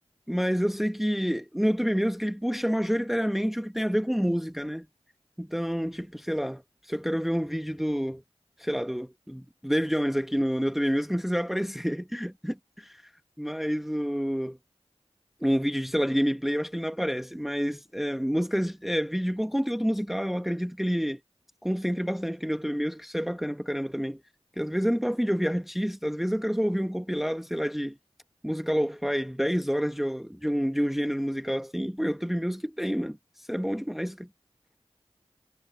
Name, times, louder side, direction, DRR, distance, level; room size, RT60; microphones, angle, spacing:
voice 1, 0.3-4.9 5.4-8.2 8.6-13.1 13.4-14.6 15.4-21.2 21.6-24.2 24.6-27.9 28.4-34.3, equal, ahead, 1.0 m, -28 dB
wide cardioid pair, 45°, 11 cm